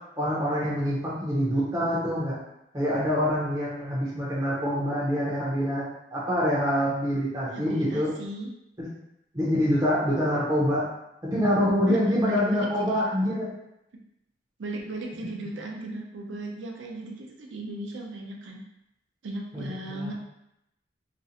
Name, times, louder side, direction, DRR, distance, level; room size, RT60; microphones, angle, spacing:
voice 1, 0.2-2.4 2.7-5.8 6.1-8.1 8.8-8.9 9.3-10.9 11.2-13.5 15.1-15.2 19.5-20.1, equal, 20° right, -7 dB, 0.5 m, -25 dB
voice 2, 7.5-8.5 11.9-13.0 14.6-18.6 19.2-20.1, right 2 dB, 75° right, 0 dB, 0.5 m, -36 dB
2.5 x 2.0 x 2.7 m, 0.84 s
head